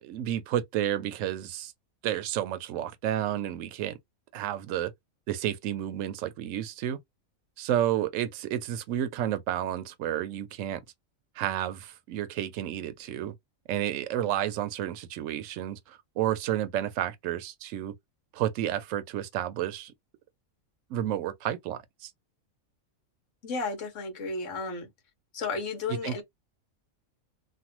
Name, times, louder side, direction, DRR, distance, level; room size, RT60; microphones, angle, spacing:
voice 1, 0.0-1.7 2.0-4.0 4.3-4.9 5.3-7.0 7.6-10.8 11.4-13.3 13.7-17.9 18.3-19.9 20.9-22.1 26.0-26.2, right 11 dB, 70° right, 0.9 m, -31 dB
voice 2, 23.4-24.9 25.3-26.2, left 4 dB, 65° left, 1.4 m, -33 dB
3.3 x 2.2 x 2.9 m
omnidirectional pair, 1.4 m